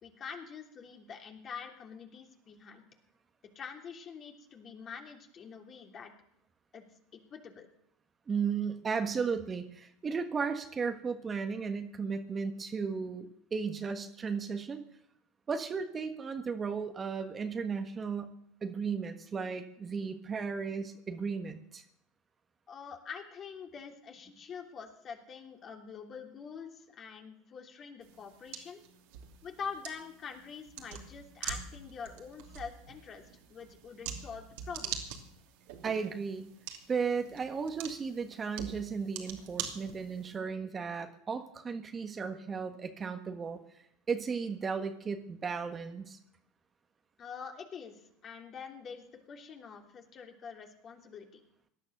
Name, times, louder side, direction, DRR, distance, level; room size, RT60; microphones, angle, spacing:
voice 1, 0.0-2.9 3.5-6.1 6.7-6.8 7.1-7.7 22.7-28.8 29.4-35.0 47.2-51.4, left 6 dB, 40° left, 3 dB, 3.1 m, -45 dB
voice 2, 8.3-14.8 15.5-18.3 18.6-21.8 35.8-36.5 36.9-43.6 44.1-46.2, right 5 dB, 25° right, 7 dB, 1.5 m, -35 dB
sound 1, 28.0-40.4, right 8 dB, 70° right, 2.7 m, -44 dB
18.0 x 11.5 x 6.7 m, 0.73 s
hypercardioid pair, 90°, 0 cm